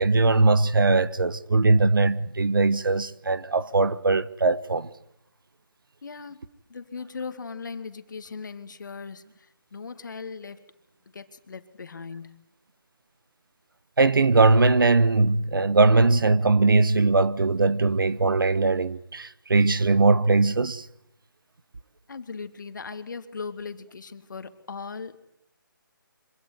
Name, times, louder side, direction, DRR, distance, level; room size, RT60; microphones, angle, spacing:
voice 1, 0.0-4.9 14.0-20.9, right 3 dB, 75° right, 1.2 m, -20 dB
voice 2, 6.0-6.4 6.7-10.6 11.1-12.4 22.1-25.2, left 5 dB, 60° left, 2.4 m, -38 dB
25.5 x 17.0 x 9.7 m
figure-of-eight pair, 160°, 11 cm